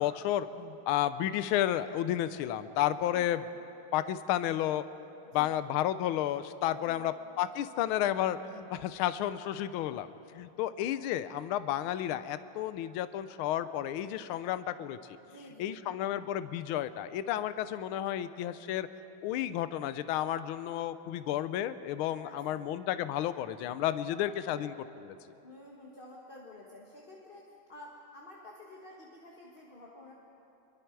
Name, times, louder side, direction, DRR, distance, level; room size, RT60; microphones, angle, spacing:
voice 1, 0.0-3.4 3.9-4.8 5.3-15.0 15.6-18.9 19.2-24.7 25.1-25.2, left 12 dB, 75° left, 13 dB, 1.5 m, -32 dB
voice 2, 5.3-5.6 6.7-7.1 15.3-16.1 22.2-22.7 24.1-24.6 25.4-30.1, left 1 dB, 25° left, -3 dB, 1.6 m, -51 dB
26.5 x 22.5 x 4.7 m, 2.8 s
omnidirectional pair, 2.4 m